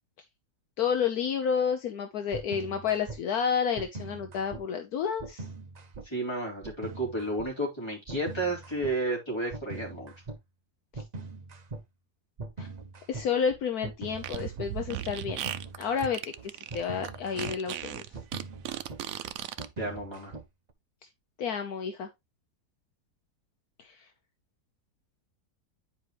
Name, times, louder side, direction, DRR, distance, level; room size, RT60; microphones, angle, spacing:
voice 1, 0.8-5.5 10.9-11.0 12.6-12.7 13.1-15.4 15.8-18.0 21.4-22.1 23.8-24.1, left 7 dB, 70° left, 1.3 m, -30 dB
sound 1, 2.3-3.2 3.8-4.6 5.2-6.1 6.6-7.5 8.1-9.0 9.5-10.4 10.9-11.8 12.4-20.7, right 3 dB, 40° right, 0.6 m, -42 dB
voice 2, 6.0-10.1 19.8-20.3, right 1 dB, 15° left, 3.5 m, -32 dB
Fart, 14.1-19.7, right 12 dB, 70° right, 0.9 m, -37 dB
9.3 x 4.9 x 3.2 m
omnidirectional pair, 1.7 m